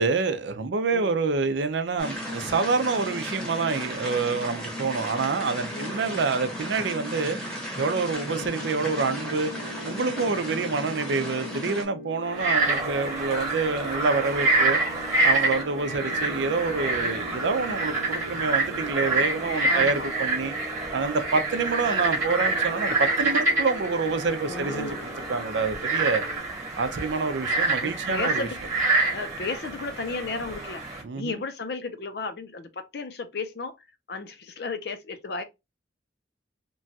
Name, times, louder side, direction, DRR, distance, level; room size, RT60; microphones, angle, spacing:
voice 1, 0.0-7.4 7.8-14.8 15.2-20.5 20.9-24.9 25.3-26.2 26.8-28.5 31.0-31.3, right 4 dB, 70° right, 0.5 m, -27 dB
sound 1, 2.0-11.9, equal, 5° left, 0.9 m, -35 dB
voice 2, 5.7-6.3 10.2-10.4 19.7-20.1 24.5-25.0 27.8-28.6 29.1-30.8 31.1-33.8 34.1-35.4, left 3 dB, 55° left, 0.5 m, -34 dB
sound 2, 8.1-26.4, left 1 dB, 85° left, 1.1 m, -42 dB
Frog, 12.3-31.0, right 2 dB, 15° right, 1.1 m, -27 dB
3.0 x 2.3 x 2.7 m
head